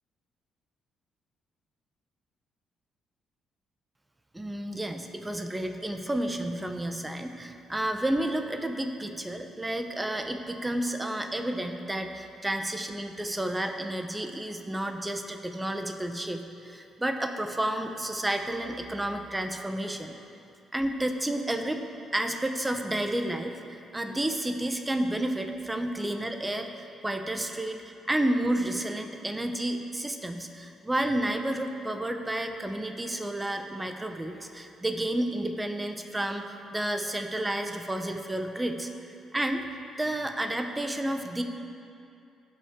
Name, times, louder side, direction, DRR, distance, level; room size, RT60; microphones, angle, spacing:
voice 1, 4.3-20.1 20.7-21.8 22.1-39.7 40.0-41.4, right 1 dB, 10° right, 5 dB, 0.8 m, -31 dB
16.5 x 5.5 x 3.7 m, 2.6 s
cardioid pair, 90°, 0 cm